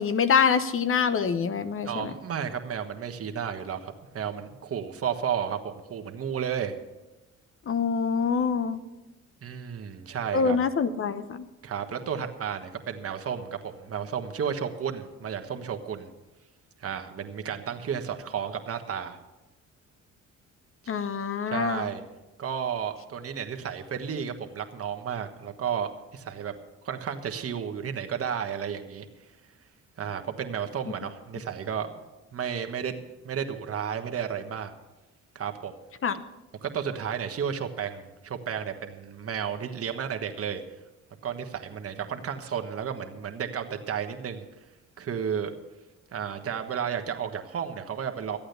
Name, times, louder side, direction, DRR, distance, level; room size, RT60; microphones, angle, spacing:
voice 1, 0.0-2.1 7.7-8.8 10.3-11.5 20.9-21.9 36.0-36.2, left 6 dB, 45° left, 12 dB, 0.8 m, -25 dB
voice 2, 1.8-6.8 9.4-10.6 11.6-16.1 16.8-19.2 21.5-22.0 22.4-26.5 26.8-29.1 30.0-31.9 32.3-34.7 35.3-35.7 36.6-40.6 41.2-44.4 45.0-45.5 46.1-48.4, right 8 dB, 50° right, 6 dB, 1.4 m, -32 dB
13.5 x 8.7 x 6.8 m, 1.0 s
cardioid pair, 90°, 30 cm